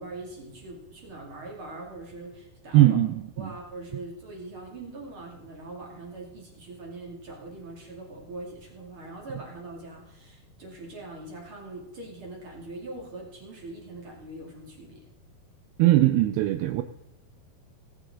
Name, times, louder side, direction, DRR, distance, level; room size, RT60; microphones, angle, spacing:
voice 1, 0.0-3.0 3.4-15.0, right 2 dB, 35° right, -1 dB, 2.7 m, -42 dB
voice 2, 2.7-3.5 15.8-16.8, right 14 dB, 80° right, 9 dB, 2.5 m, -20 dB
18.0 x 9.7 x 3.7 m, 0.92 s
omnidirectional pair, 4.7 m